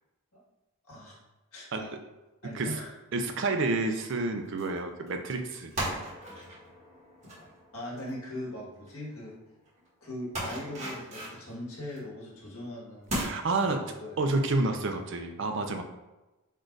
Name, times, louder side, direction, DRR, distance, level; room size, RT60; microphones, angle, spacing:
voice 1, 0.9-1.2 1.5-1.9 2.4-2.9 7.4-7.5 7.7-9.3 10.0-14.2, left 1 dB, 85° left, -4 dB, 1.5 m, -40 dB
sound 1, 2.6-2.8 3.3-3.6 4.6-4.8 5.1-8.9 9.2-9.3 9.7-9.8 10.3-12.1 12.5-12.6 13.1-13.2, right 1 dB, 35° right, 1.5 m, -37 dB
voice 2, 3.1-5.7 13.2-15.8, right 3 dB, 55° right, 5 dB, 0.5 m, -29 dB
4.4 x 2.5 x 4.5 m, 1.0 s
head